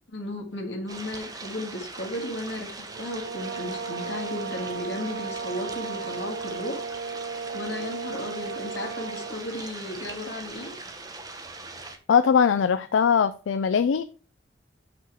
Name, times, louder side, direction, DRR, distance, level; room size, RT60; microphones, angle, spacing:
voice 1, 0.1-6.8 7.5-10.7, left 1 dB, 70° left, 3 dB, 1.9 m, -35 dB
sound 1, 0.9-12.0, right 3 dB, 20° right, 0.9 m, -40 dB
sound 2, 2.9-9.5, right 5 dB, 60° right, 0.4 m, -35 dB
voice 2, 12.1-14.0, left 6 dB, 85° left, 12 dB, 0.4 m, -21 dB
5.8 x 5.7 x 4.6 m, 0.37 s
head